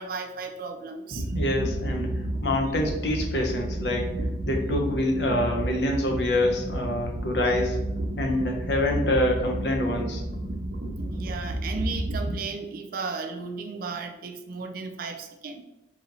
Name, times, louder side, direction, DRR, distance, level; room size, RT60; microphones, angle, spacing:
voice 1, 0.0-1.4 11.0-15.6, right 4 dB, 55° right, 5 dB, 0.4 m, -35 dB
sound 1, 1.1-12.4, right 1 dB, 85° right, 0.8 m, -31 dB
voice 2, 1.3-4.1 4.4-7.8 8.2-10.2, left 1 dB, 70° left, 2 dB, 0.8 m, -26 dB
4.2 x 2.9 x 3.9 m, 0.95 s
head